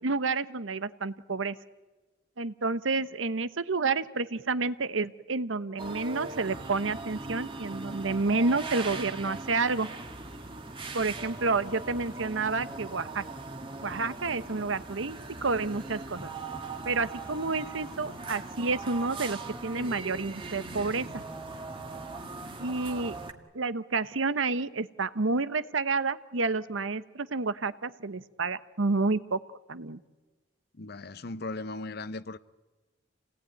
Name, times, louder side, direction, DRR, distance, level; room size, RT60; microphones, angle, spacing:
voice 1, 0.0-1.5 2.4-9.9 10.9-13.2 13.8-16.3 16.8-21.1 22.6-23.2 23.5-29.4 29.7-30.0, right 3 dB, 90° right, 1.0 m, -29 dB
sound 1, 5.8-23.3, right 3 dB, 25° right, 1.7 m, -40 dB
voice 2, 30.8-32.4, left 2 dB, 55° left, 0.8 m, -37 dB
28.5 x 18.5 x 9.2 m
head